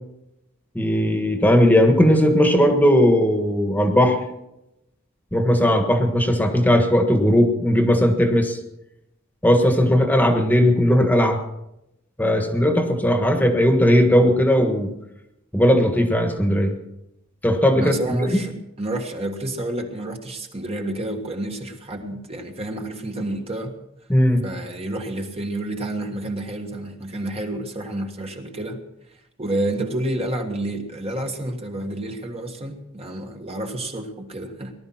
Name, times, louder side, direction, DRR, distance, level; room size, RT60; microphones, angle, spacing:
voice 1, 0.7-4.2 5.3-8.6 9.4-11.4 12.2-14.9 15.5-16.7 17.4-18.3 24.1-24.4, equal, 10° left, 5 dB, 1.5 m, -17 dB
voice 2, 17.8-23.7 24.4-28.8 29.4-34.7, right 1 dB, 30° right, 3 dB, 1.6 m, -29 dB
19.0 x 12.0 x 6.0 m, 0.88 s
head